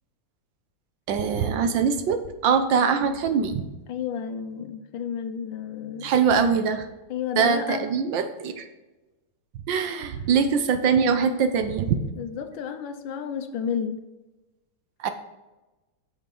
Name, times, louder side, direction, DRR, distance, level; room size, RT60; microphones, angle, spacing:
voice 1, 1.1-3.7 6.0-6.9 7.4-8.7 9.7-12.0 15.0-15.1, right 6 dB, 70° right, 8 dB, 1.4 m, -23 dB
voice 2, 3.9-6.1 7.1-7.9 12.2-14.0, left 7 dB, 70° left, 9 dB, 1.4 m, -31 dB
8.5 x 7.0 x 3.8 m, 1.1 s
omnidirectional pair, 2.3 m